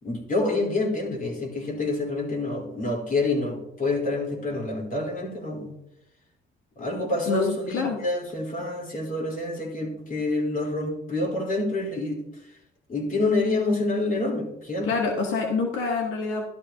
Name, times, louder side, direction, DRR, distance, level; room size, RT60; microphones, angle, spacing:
voice 1, 0.0-5.7 6.8-12.2 12.9-14.9, left 2 dB, 45° left, 0 dB, 4.0 m, -27 dB
voice 2, 7.3-8.0 14.8-16.4, left 4 dB, 90° left, 1 dB, 1.6 m, -26 dB
14.5 x 12.0 x 2.9 m, 0.82 s
cardioid pair, 90°, 20 cm